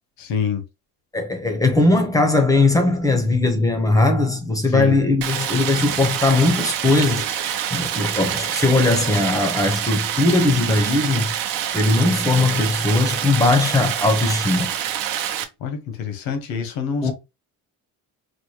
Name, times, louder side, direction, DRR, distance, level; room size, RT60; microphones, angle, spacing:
voice 1, 0.2-0.6 4.7-5.0 15.6-17.1, left 6 dB, 85° left, 0.9 m, -26 dB
voice 2, 1.1-7.3 7.7-11.3 11.7-14.7 17.0-17.1, left 2 dB, 10° left, 0.5 m, -19 dB
Stream, 5.2-15.4, right 10 dB, 75° right, 0.7 m, -26 dB
4.1 x 2.1 x 3.0 m
cardioid pair, 155°, 34 cm